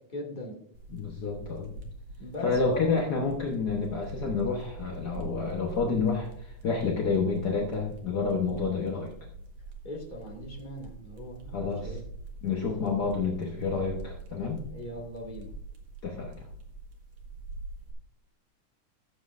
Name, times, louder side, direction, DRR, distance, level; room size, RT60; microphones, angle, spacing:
voice 1, 0.1-0.5 2.2-3.1 9.8-12.0 14.7-15.5, left 2 dB, 20° left, -1 dB, 1.6 m, -39 dB
sound 1, 0.7-17.9, right 3 dB, 60° right, 2.5 m, -44 dB
voice 2, 0.9-1.7 2.4-9.1 11.5-12.0 12.4-14.6 16.0-16.5, left 4 dB, 65° left, 0 dB, 1.0 m, -29 dB
15.0 x 7.6 x 2.5 m, 0.67 s
omnidirectional pair, 3.5 m